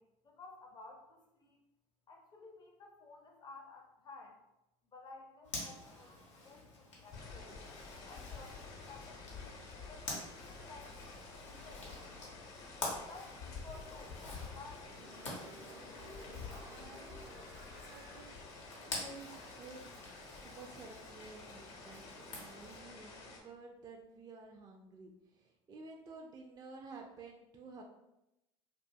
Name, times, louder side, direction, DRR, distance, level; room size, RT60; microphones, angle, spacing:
voice 1, 0.0-1.6 2.1-4.4 4.9-7.5 8.0-9.6 9.9-12.4 13.0-14.9, left 3 dB, 30° left, 1 dB, 0.5 m, -55 dB
Zipper (clothing), 5.4-22.8, left 2 dB, 90° left, 0.7 m, -48 dB
sound 1, 7.1-23.4, left 4 dB, 60° left, 0.8 m, -50 dB
sound 2, 13.6-19.2 19.5-19.6, equal, 65° right, 0.7 m, -56 dB
voice 2, 16.6-17.4 17.9-18.4 18.8-19.9 20.4-27.8, right 3 dB, 25° right, 1 dB, 0.4 m, -52 dB
2.6 x 2.3 x 2.5 m, 0.91 s
hypercardioid pair, 65°, 15 cm